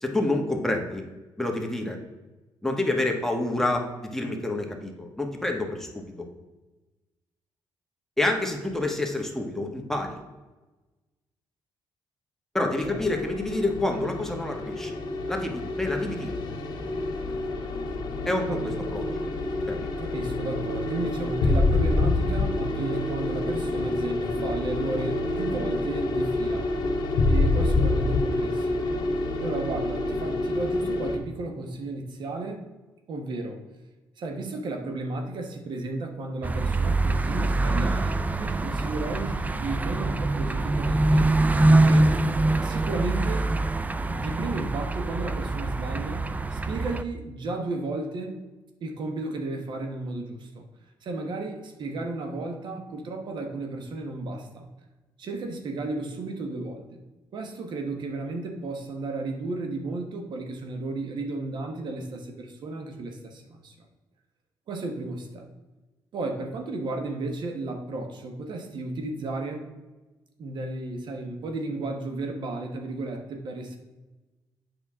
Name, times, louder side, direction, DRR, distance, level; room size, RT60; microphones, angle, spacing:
voice 1, 0.0-1.0 1.4-2.0 2.6-6.0 8.2-10.2 12.5-15.0 15.3-16.3 18.2-18.6 18.9-19.0 19.7-19.9, left 2 dB, 5° left, 2 dB, 1.3 m, -28 dB
sound 1, 12.8-31.2, left 2 dB, 60° left, 1.4 m, -27 dB
voice 2, 20.0-26.8 27.3-29.0 29.4-32.7 33.1-33.6 34.2-41.3 41.8-42.1 42.6-43.5 44.1-48.4 48.8-50.7 51.0-54.7 55.2-57.0 57.3-63.7 64.7-65.5 66.1-69.7 70.4-73.8, right 2 dB, 65° right, 4 dB, 1.3 m, -33 dB
sound 2, 36.4-47.0, right 2 dB, 20° right, 0.4 m, -24 dB
8.0 x 5.9 x 3.7 m, 1.1 s
cardioid pair, 95°, 8 cm